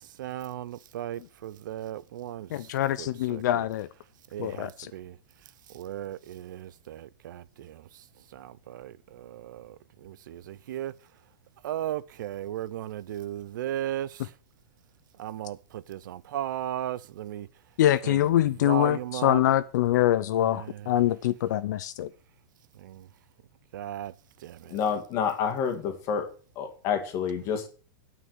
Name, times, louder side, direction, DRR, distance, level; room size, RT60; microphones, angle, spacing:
voice 1, 0.2-2.7 3.0-3.7 4.3-5.2 5.7-7.9 8.3-9.8 10.0-10.9 11.6-14.3 15.2-17.5 18.0-18.3 18.6-19.4 20.5-20.9 22.8-23.1 23.7-24.1 24.4-24.8, right 12 dB, 60° right, 0.6 m, -36 dB
voice 2, 2.5-3.9 4.4-4.9 17.8-22.1, left 13 dB, 55° left, 0.6 m, -24 dB
voice 3, 24.7-26.3 26.6-27.7, left 7 dB, 25° left, 1.8 m, -28 dB
9.5 x 5.9 x 7.8 m
supercardioid pair, 175°, 12 cm